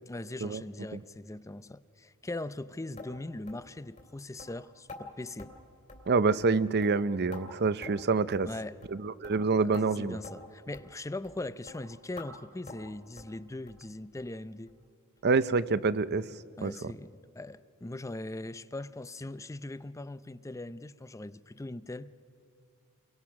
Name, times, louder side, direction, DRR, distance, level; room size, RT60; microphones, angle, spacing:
voice 1, 0.1-5.5 8.5-8.8 9.6-14.7 16.6-22.1, left 2 dB, 15° left, 0.5 m, -40 dB
sound 1, 3.0-3.1 3.5-3.6 4.0-4.1 4.4-4.5 4.9-5.0 5.4-5.5 5.9-6.1 6.4-6.5 6.8-7.4 7.8-8.0 8.3-8.5 8.8-9.0 9.2-9.4 9.7-9.9 10.2-10.4 10.7-10.9 11.2-11.4 11.7-11.8 12.2-12.3 12.7-12.9 13.2-13.3 13.7-13.8 14.2-14.3 14.7-14.8 15.2-15.3, left 3 dB, 30° left, 2.9 m, -47 dB
voice 2, 6.1-8.5 9.0-10.2 15.2-16.2 16.6-16.9, right 4 dB, 50° right, 0.7 m, -27 dB
29.5 x 23.0 x 6.0 m
head